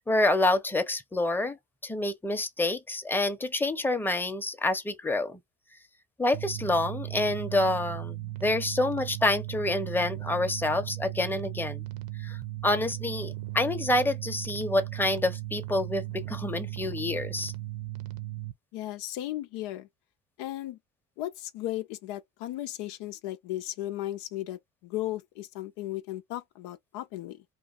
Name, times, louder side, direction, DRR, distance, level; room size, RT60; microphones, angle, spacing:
voice 1, 0.0-1.6 1.8-5.4 6.2-11.8 12.2-12.4 12.6-17.5, left 2 dB, 5° left, 0.7 m, -27 dB
sound 1, 6.3-18.5, right 16 dB, 55° right, 0.8 m, -37 dB
voice 2, 18.7-19.9 20.4-20.8 21.2-27.4, left 14 dB, 70° left, 0.6 m, -36 dB
3.1 x 2.4 x 3.9 m
hypercardioid pair, 60°, 42 cm